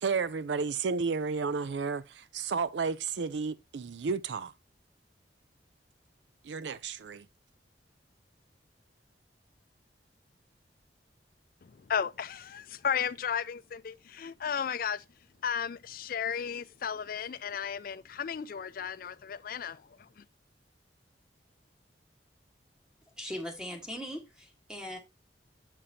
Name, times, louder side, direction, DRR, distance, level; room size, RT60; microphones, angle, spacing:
voice 1, 0.0-4.5 6.4-7.3, right 5 dB, 80° right, 0.5 m, -32 dB
voice 2, 11.7-15.0 15.4-20.2, left 7 dB, 55° left, 0.4 m, -34 dB
voice 3, 23.2-25.0, equal, 5° right, 1.4 m, -39 dB
7.4 x 6.8 x 2.7 m
head